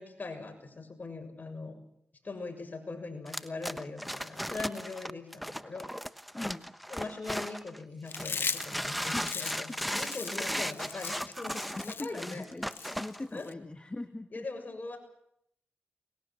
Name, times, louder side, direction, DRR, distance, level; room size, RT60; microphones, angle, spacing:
voice 1, 0.0-1.8 2.2-5.9 6.9-12.5 13.3-13.5 14.3-15.0, left 3 dB, 45° left, 5 dB, 6.9 m, -41 dB
sound 1, 3.3-7.8 8.2-13.2, equal, ahead, 1.1 m, -36 dB
voice 2, 6.3-6.7 9.1-9.3 10.3-10.6 11.7-12.7 13.0-14.4, left 2 dB, 30° left, 7 dB, 1.7 m, -40 dB
Chewing mastication, 8.1-13.5, left 6 dB, 70° left, 1.2 m, -38 dB
24.0 x 21.0 x 7.6 m, 0.74 s
cardioid pair, 45°, 4 cm